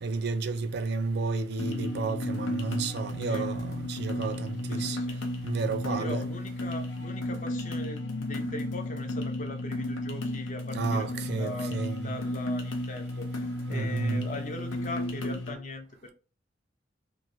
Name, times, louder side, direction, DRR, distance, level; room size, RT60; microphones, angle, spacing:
voice 1, 0.0-5.0 5.4-6.2 10.7-12.1 13.7-14.2, right 4 dB, 60° right, 0.4 m, -31 dB
sound 1, 1.6-15.6, left 1 dB, 90° left, 0.6 m, -33 dB
voice 2, 4.7-5.2 5.9-11.7 12.0-16.1, left 2 dB, 40° left, 0.5 m, -40 dB
3.0 x 2.6 x 2.5 m
head